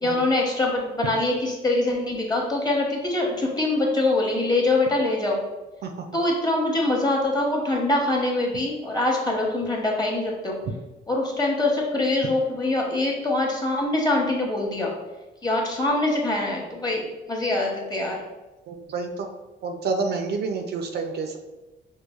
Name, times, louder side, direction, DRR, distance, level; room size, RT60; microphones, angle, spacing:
voice 1, 0.0-5.4 6.1-10.6 11.1-14.9 15.4-18.2, left 2 dB, 20° left, -1 dB, 0.9 m, -24 dB
voice 2, 18.7-19.3 19.6-21.4, right 4 dB, 55° right, 5 dB, 0.4 m, -29 dB
4.6 x 2.3 x 2.3 m, 1.1 s
cardioid pair, 90°, 20 cm